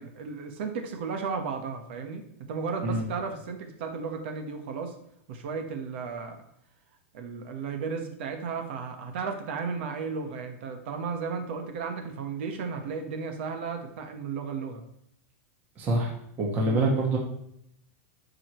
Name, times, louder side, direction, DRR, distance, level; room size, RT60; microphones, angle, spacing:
voice 1, 0.0-4.9 5.3-6.4 7.1-14.8 16.6-16.8, right 5 dB, 50° right, 5 dB, 1.2 m, -34 dB
voice 2, 15.8-16.1 16.4-17.2, right 2 dB, 20° right, -1 dB, 1.5 m, -25 dB
12.0 x 5.1 x 3.1 m, 0.75 s
supercardioid pair, 180°, 8 cm